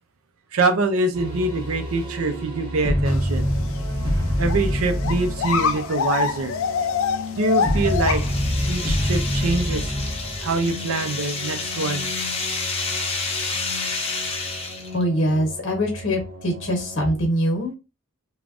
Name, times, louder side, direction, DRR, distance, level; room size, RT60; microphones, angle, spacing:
voice 1, 0.5-3.5 4.4-6.5 7.4-8.2 8.6-9.9 10.4-12.0, right 3 dB, 90° right, 0.6 m, -24 dB
sound 1, 1.1-17.2, equal, 20° right, 0.9 m, -28 dB
sound 2, 3.0-3.4 3.8-3.9 4.4-4.6 5.0-8.4, left 6 dB, 75° left, 0.4 m, -25 dB
sound 3, 7.3-15.0, left 4 dB, 30° left, 0.6 m, -30 dB
voice 2, 14.9-17.7, equal, 60° left, 1.1 m, -23 dB
3.3 x 2.2 x 2.5 m
head